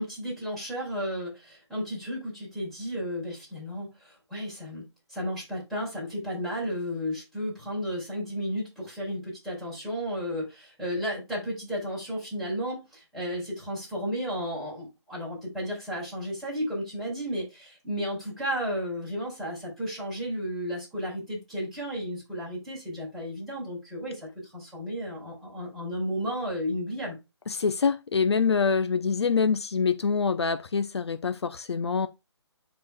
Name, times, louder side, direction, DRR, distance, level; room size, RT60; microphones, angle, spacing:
voice 1, 0.0-27.2, equal, ahead, 4.9 m, -33 dB
voice 2, 27.5-32.1, left 5 dB, 65° left, 0.8 m, -25 dB
11.5 x 4.7 x 2.3 m
hypercardioid pair, 160°, 15 cm